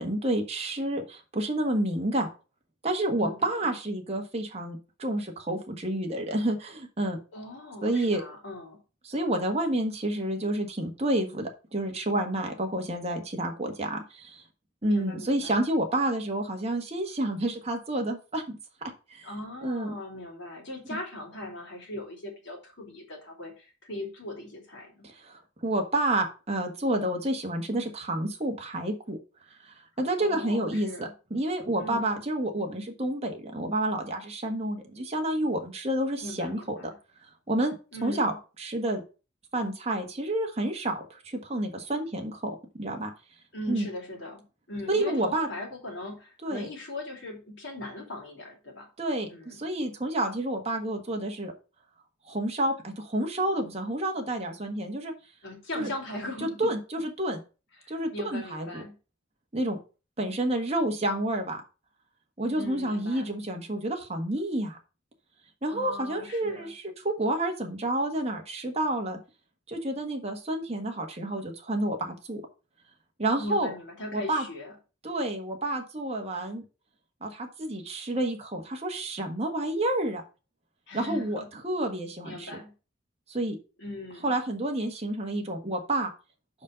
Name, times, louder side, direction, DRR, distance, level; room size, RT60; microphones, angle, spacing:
voice 1, 0.0-2.3 2.8-7.2 7.8-8.2 9.0-14.4 14.8-18.6 19.1-19.3 19.6-19.9 20.9-21.0 25.0-29.2 29.6-36.7 37.5-37.7 38.0-38.3 38.6-39.0 39.5-43.1 43.7-43.9 44.9-45.5 46.4-46.7 49.0-51.5 52.3-55.1 55.8-55.9 56.4-57.4 57.9-58.8 59.5-59.8 60.2-61.6 62.4-64.8 65.6-69.2 69.7-72.4 73.2-73.7 74.1-74.4 75.0-76.6 77.2-80.2 80.9-82.5 83.3-83.6 84.2-86.1, right 1 dB, 30° right, 3 dB, 1.5 m, -29 dB
voice 2, 3.1-3.6 7.3-8.8 14.8-15.7 19.2-25.1 30.2-31.1 31.8-32.1 36.2-36.9 37.9-38.4 43.5-48.9 49.3-49.6 55.4-56.7 57.8-58.9 62.5-63.3 65.7-66.7 73.4-74.7 80.9-81.5 82.2-82.7 83.8-84.3, left 1 dB, 60° left, -1 dB, 3.2 m, -39 dB
5.4 x 5.3 x 6.3 m, 0.33 s
head